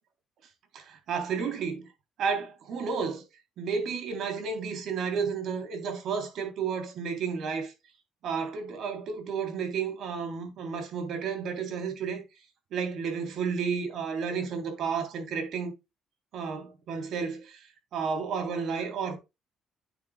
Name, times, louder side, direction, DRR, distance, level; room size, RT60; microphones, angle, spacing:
voice 1, 0.7-1.9 2.2-3.2 3.6-7.7 8.2-12.2 12.7-15.7 16.3-17.6 17.9-19.2, right 6 dB, 70° right, 3.3 m, -32 dB
9.1 x 8.2 x 2.3 m
cardioid pair, 85°, 0 cm